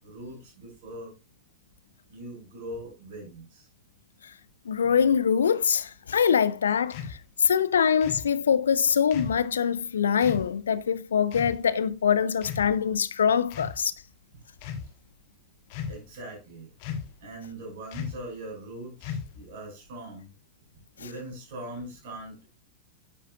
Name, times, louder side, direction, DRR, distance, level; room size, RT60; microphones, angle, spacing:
voice 1, 0.0-1.1 2.1-3.7 15.9-16.7 17.2-20.3 21.0-22.5, right 1 dB, 55° right, 5.5 m, -41 dB
voice 2, 4.7-13.9, left 7 dB, 70° left, 0.5 m, -24 dB
sound 1, 6.9-7.2 8.0-8.3 9.1-9.4 10.2-10.5 11.3-11.6 12.4-12.9 13.5-13.8 14.5-14.9 15.7-16.1 16.8-17.2 17.9-18.3 19.0-19.5, left 7 dB, 45° left, 1.3 m, -36 dB
9.9 x 7.5 x 2.4 m
figure-of-eight pair, 90°, 0 cm